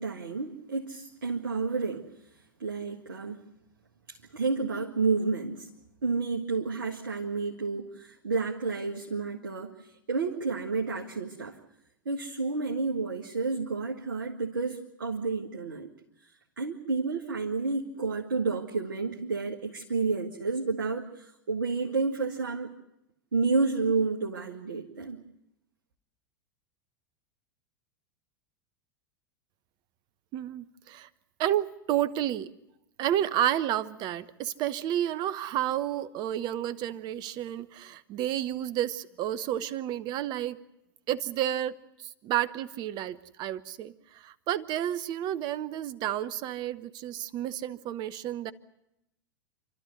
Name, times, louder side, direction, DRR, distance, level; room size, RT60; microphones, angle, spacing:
voice 1, 0.0-2.1 2.6-3.4 4.1-5.7 6.0-11.6 12.1-15.9 16.6-22.7 23.3-25.2, right 4 dB, 75° right, 0 dB, 1.8 m, -30 dB
voice 2, 30.3-31.1 31.4-32.5 33.0-40.6 41.1-48.5, right 11 dB, 40° right, 16 dB, 1.0 m, -31 dB
28.5 x 13.0 x 9.4 m, 0.85 s
figure-of-eight pair, 90°, 11 cm